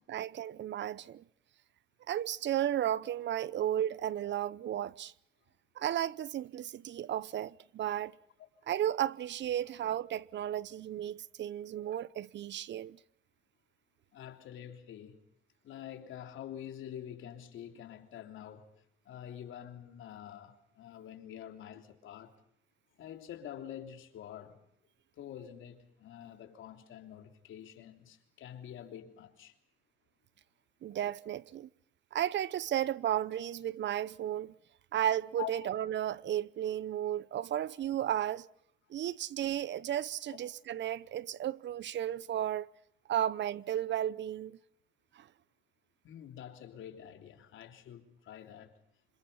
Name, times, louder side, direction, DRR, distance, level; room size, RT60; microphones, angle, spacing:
voice 1, 0.1-1.2 2.1-5.1 5.8-8.2 8.7-13.0 30.8-31.7 32.1-34.5 34.9-38.5 38.9-42.7 43.1-44.6 45.2-45.3, right 11 dB, 65° right, 0.8 m, -34 dB
voice 2, 14.1-15.2 15.6-18.7 19.0-22.3 23.0-24.6 25.1-29.5 35.4-35.7 40.3-40.4 46.0-48.7, left 10 dB, 80° left, 3.3 m, -46 dB
26.5 x 26.0 x 5.6 m
cardioid pair, 90°, 20 cm